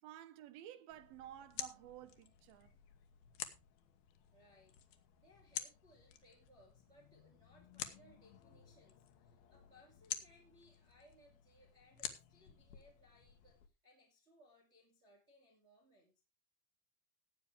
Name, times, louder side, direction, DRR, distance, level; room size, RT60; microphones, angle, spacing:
voice 1, 0.0-2.8, right 12 dB, 85° right, 2.7 m, -53 dB
sound 1, 0.9-13.7, left 11 dB, 85° left, 3.0 m, -50 dB
voice 2, 4.3-4.8 5.1-16.2, left 1 dB, 20° right, 2.2 m, -67 dB
17.5 x 8.6 x 3.3 m
omnidirectional pair, 4.2 m